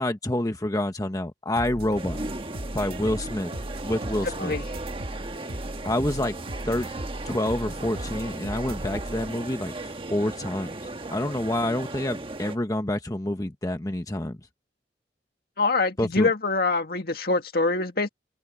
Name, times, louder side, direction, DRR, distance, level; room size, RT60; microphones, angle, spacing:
voice 1, 0.0-2.2 2.7-3.5 3.8-4.5 5.8-6.4 6.6-6.9 7.2-9.7 10.1-14.4 16.0-16.3, left 1 dB, 20° left, 1.1 m, -27 dB
sound 1, 1.6-9.3, right 1 dB, 60° right, 1.8 m, -37 dB
sound 2, 2.0-12.6, right 2 dB, 30° right, 1.3 m, -37 dB
voice 2, 15.6-18.1, left 3 dB, 60° left, 2.0 m, -24 dB
head